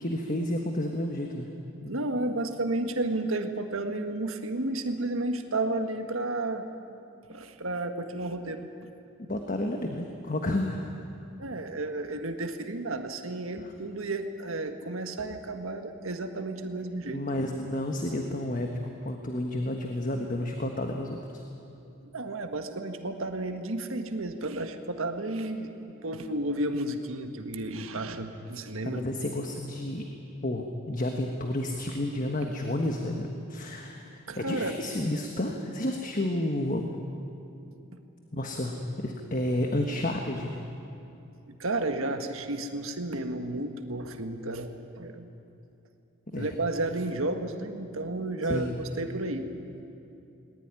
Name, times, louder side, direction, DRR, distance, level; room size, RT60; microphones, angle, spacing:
voice 1, 0.0-1.5 1.8-1.9 9.3-10.9 13.6-13.7 17.1-18.7 19.0-21.4 28.8-30.0 30.4-36.9 38.3-40.6 46.3-46.5 48.5-48.8, left 1 dB, 40° left, 3 dB, 1.4 m, -31 dB
voice 2, 1.9-6.7 7.3-8.6 11.4-17.2 22.1-25.7 26.0-29.1 34.3-34.8 41.6-45.3 46.3-49.5, right 2 dB, 70° right, 6 dB, 1.6 m, -32 dB
19.5 x 19.5 x 9.8 m, 2.7 s
head